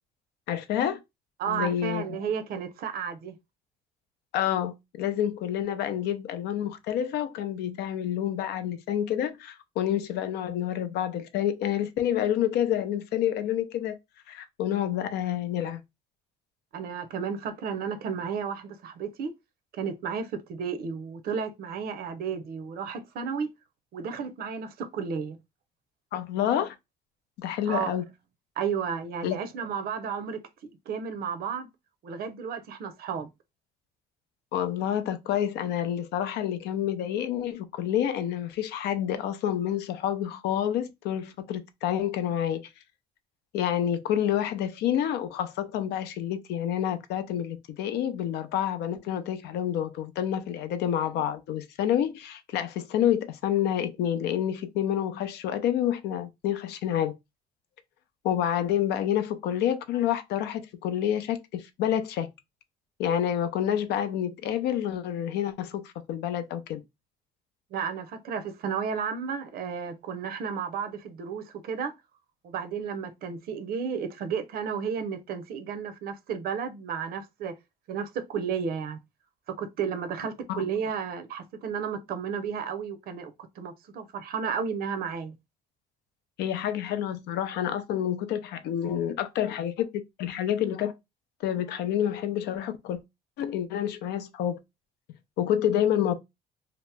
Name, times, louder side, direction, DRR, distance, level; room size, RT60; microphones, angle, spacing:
voice 1, 0.5-1.0 1.5-2.2 4.3-14.0 14.3-15.8 26.1-26.7 27.4-28.0 29.2-29.4 34.5-42.6 43.5-57.1 58.2-62.3 63.0-66.8 80.5-80.7 86.4-89.9 90.2-90.9 91.4-93.0 93.4-94.6 95.4-96.1, left 10 dB, 80° left, 0.5 m, -28 dB
voice 2, 1.4-3.4 16.7-19.3 19.7-23.5 23.9-25.4 27.7-28.0 28.6-30.4 30.9-31.7 32.0-33.3 67.7-71.9 72.4-77.5 77.9-79.0 79.5-85.4, right 6 dB, 65° right, 0.6 m, -33 dB
2.8 x 2.1 x 3.3 m
cardioid pair, 110°, 17 cm